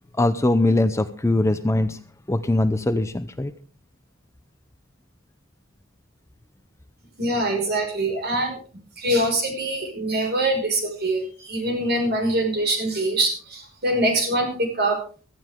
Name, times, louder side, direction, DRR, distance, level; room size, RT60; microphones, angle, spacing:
voice 1, 0.2-2.0 2.3-3.5, left 2 dB, 15° left, 11 dB, 0.6 m, -21 dB
voice 2, 7.2-8.6 9.0-15.0, right 1 dB, 50° right, 4 dB, 5.5 m, -24 dB
16.5 x 14.0 x 3.7 m, 0.40 s
head